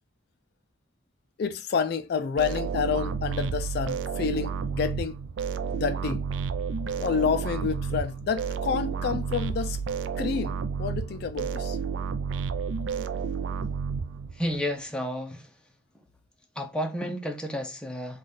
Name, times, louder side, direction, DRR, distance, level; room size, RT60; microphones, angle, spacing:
voice 1, 1.4-5.1 5.6-6.2 7.0-9.8 10.2-11.8, left 6 dB, 55° left, 0.3 m, -29 dB
sound 1, 2.4-14.6, right 6 dB, 75° right, 0.4 m, -31 dB
voice 2, 14.3-15.5 15.9-16.0 16.6-18.2, equal, 5° left, 0.5 m, -32 dB
3.9 x 2.3 x 3.2 m
head